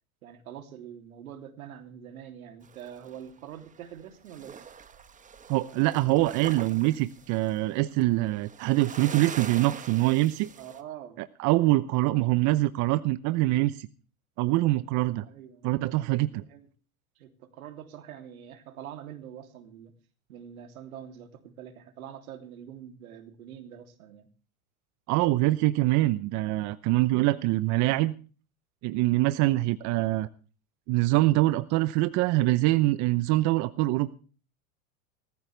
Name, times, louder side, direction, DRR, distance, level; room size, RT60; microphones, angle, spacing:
voice 1, 0.2-4.7 10.6-11.2 15.2-15.7 16.5-16.7 17.2-19.9 20.3-24.3, right 9 dB, 75° right, 7 dB, 3.1 m, -45 dB
sound 1, 2.6-4.0 4.3-10.8, right 6 dB, 20° right, 1.4 m, -44 dB
voice 2, 5.5-10.5 11.2-13.9 14.4-15.2 15.6-16.4 25.1-28.1 28.8-30.3 30.9-34.1, right 18 dB, 45° right, 15 dB, 0.9 m, -24 dB
19.5 x 14.0 x 3.4 m, 0.37 s
hypercardioid pair, 110°, 42 cm